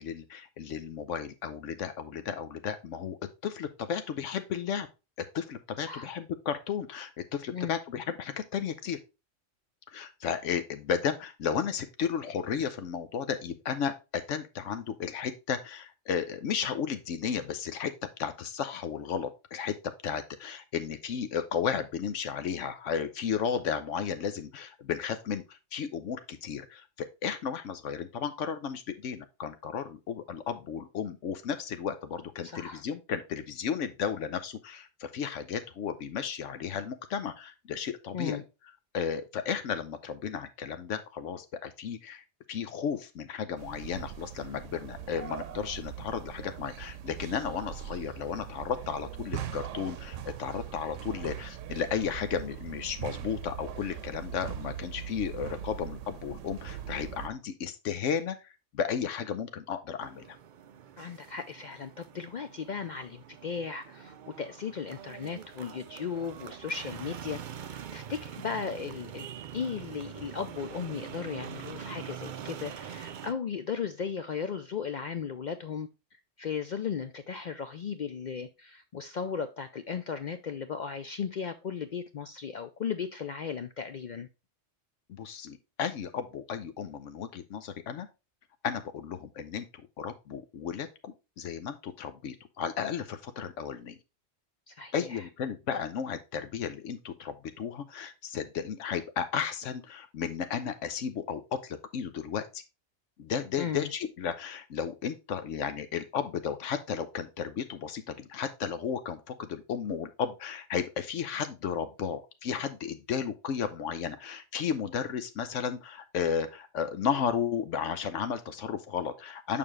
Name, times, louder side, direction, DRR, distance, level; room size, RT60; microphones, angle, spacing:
voice 1, 0.0-3.2 3.4-4.9 5.3-9.0 9.9-17.9 18.2-38.4 38.9-60.4 85.1-88.1 88.6-94.0 94.9-102.6 103.2-119.6, left 7 dB, 80° left, 1.0 m, -34 dB
voice 2, 32.4-32.8 38.1-38.4 61.0-69.3 69.5-75.9 76.4-84.3 94.7-95.3 103.6-103.9, left 6 dB, 60° left, 0.4 m, -36 dB
sound 1, 43.6-57.3, right 9 dB, 80° right, 1.0 m, -41 dB
sound 2, 60.0-73.3, right 8 dB, 60° right, 0.5 m, -44 dB
6.8 x 5.4 x 3.1 m
omnidirectional pair, 1.3 m